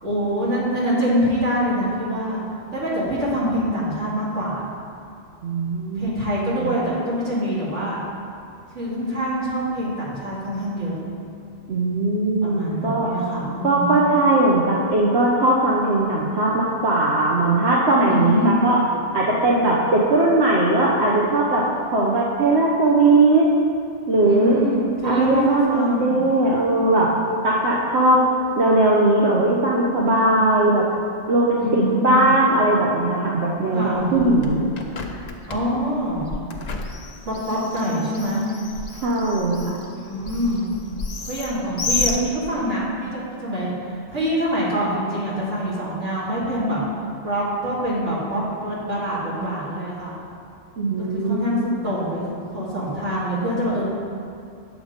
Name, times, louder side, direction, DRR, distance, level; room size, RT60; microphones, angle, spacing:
voice 1, 0.0-2.5 2.7-4.7 5.9-8.0 8.7-11.1 12.4-14.0 18.1-18.5 24.2-26.2 31.6-32.3 33.7-34.1 35.5-36.3 37.3-38.5 39.9-40.7 41.3-46.8 47.2-50.2 51.1-53.9, equal, 85° right, -7 dB, 2.6 m, -25 dB
voice 2, 5.4-6.3 6.6-6.7 11.7-13.1 13.6-18.8 19.1-23.5 24.1-24.6 25.0-27.1 27.4-28.3 28.6-30.9 31.3-34.7 39.0-39.8 50.8-51.7, right 2 dB, 65° right, -3 dB, 1.1 m, -19 dB
Bird, 33.9-42.8, left 3 dB, 40° left, 0.8 m, -32 dB
8.3 x 6.7 x 5.0 m, 2.5 s
omnidirectional pair, 1.2 m